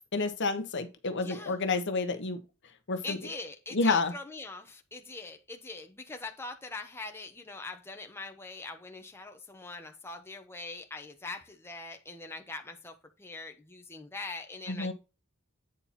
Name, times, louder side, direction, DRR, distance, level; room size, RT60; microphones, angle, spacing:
voice 1, 0.1-2.4 2.9-3.2 3.7-4.1 14.7-14.9, left 3 dB, 60° left, 1.1 m, -29 dB
voice 2, 1.1-1.6 3.0-14.9, left 3 dB, 10° left, 1.0 m, -42 dB
8.9 x 4.4 x 4.3 m
head